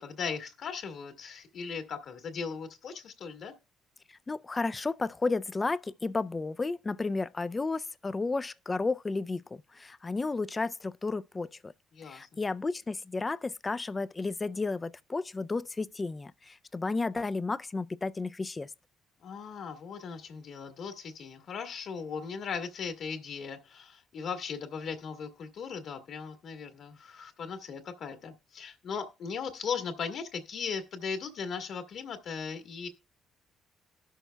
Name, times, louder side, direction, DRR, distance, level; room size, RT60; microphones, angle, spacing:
voice 1, 0.0-3.5 11.9-12.3 19.2-32.9, left 6 dB, 65° left, 1.6 m, -38 dB
voice 2, 4.3-11.7 12.1-18.7, left 3 dB, 25° left, 0.4 m, -32 dB
19.0 x 6.3 x 2.2 m
supercardioid pair, 75°, 0 cm